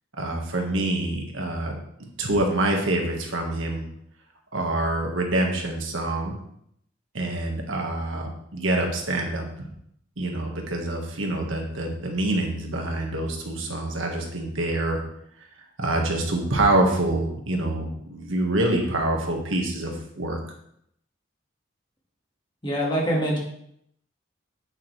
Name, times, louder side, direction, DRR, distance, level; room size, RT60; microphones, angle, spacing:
voice 1, 0.2-1.7 2.2-3.9 4.5-6.4 7.1-9.4 10.2-15.0 15.8-20.4, right 1 dB, 85° right, 1 dB, 1.6 m, -26 dB
voice 2, 22.6-23.4, equal, 25° left, -3 dB, 2.0 m, -24 dB
8.4 x 6.8 x 3.3 m, 0.72 s
head